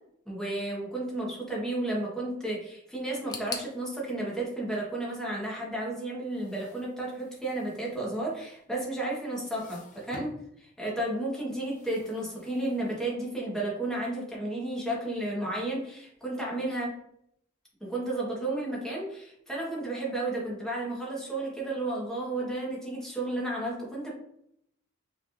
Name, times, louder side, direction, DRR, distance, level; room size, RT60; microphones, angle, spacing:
voice 1, 0.3-16.9 17.8-24.1, right 1 dB, 5° left, -5 dB, 1.3 m, -32 dB
sound 1, 3.3-6.2 6.4-7.2 7.5-7.6 8.5-8.6, left 4 dB, 20° left, 0.4 m, -44 dB
sound 2, 6.1-8.9 9.2-10.5 11.5-13.4, left 1 dB, 40° left, 0.9 m, -53 dB
5.5 x 3.4 x 2.5 m, 0.73 s
head